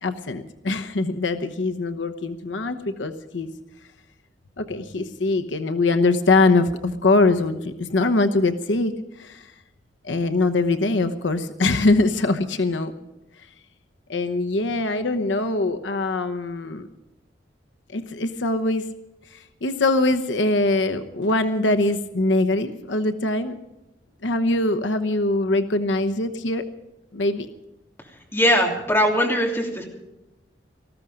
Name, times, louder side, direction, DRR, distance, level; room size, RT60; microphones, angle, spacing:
voice 1, 0.0-3.5 4.6-8.9 9.2-9.5 10.0-12.9 14.1-16.9 17.9-18.9 19.3-23.6 24.2-26.6 27.1-27.5, left 2 dB, 85° left, 9 dB, 0.9 m, -22 dB
voice 2, 28.3-29.8, equal, 15° left, -1 dB, 3.1 m, -20 dB
19.0 x 14.5 x 5.1 m, 0.95 s
head